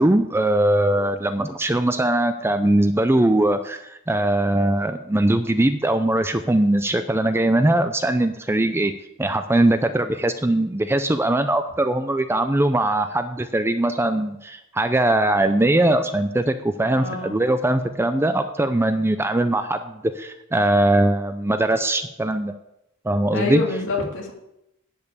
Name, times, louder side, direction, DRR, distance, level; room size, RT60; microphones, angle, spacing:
voice 1, 0.0-8.9 9.2-22.5 23.0-23.6, right 1 dB, 10° right, 9 dB, 0.5 m, -21 dB
voice 2, 16.9-17.4 23.3-24.3, left 3 dB, 60° left, -1 dB, 2.8 m, -26 dB
10.5 x 5.5 x 8.4 m, 0.84 s
head